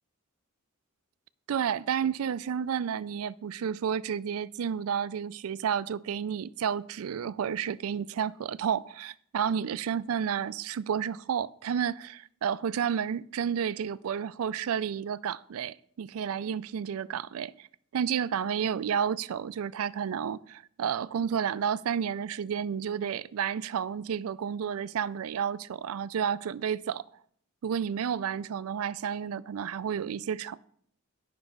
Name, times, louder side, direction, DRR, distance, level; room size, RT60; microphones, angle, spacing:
voice 1, 1.5-17.7 17.9-27.0 27.6-30.6, right 8 dB, 75° right, 0.4 m, -31 dB
9.7 x 5.9 x 5.3 m
head